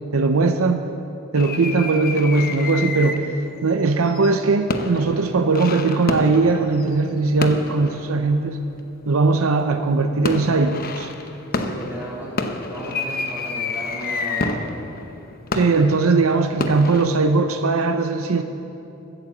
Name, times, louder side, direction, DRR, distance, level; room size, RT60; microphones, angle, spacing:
voice 1, 0.1-0.8 1.3-3.3 3.6-8.6 9.1-11.1 15.5-18.4, right 3 dB, 75° right, 7 dB, 0.6 m, -19 dB
sound 1, 1.3-3.4 3.9-8.8 9.5-9.8 10.2-17.1, left 3 dB, 45° left, 0.9 m, -29 dB
voice 2, 11.5-12.4 12.7-14.8, right 1 dB, 10° right, -6 dB, 3.4 m, -34 dB
14.5 x 9.1 x 7.3 m, 2.8 s
head